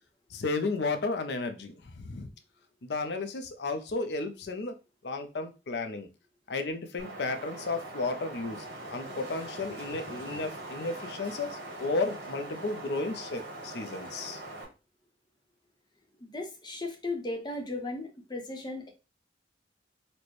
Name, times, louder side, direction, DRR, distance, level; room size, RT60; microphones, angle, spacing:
voice 1, 0.3-2.3 2.8-4.7 5.0-6.1 6.5-8.6 8.9-14.4, left 3 dB, 75° left, 7 dB, 0.5 m, -33 dB
Wind, 7.0-14.6, right 2 dB, 80° right, 1.3 m, -42 dB
voice 2, 16.2-18.9, left 2 dB, 25° left, 3 dB, 0.7 m, -36 dB
4.2 x 2.1 x 3.1 m, 0.30 s
head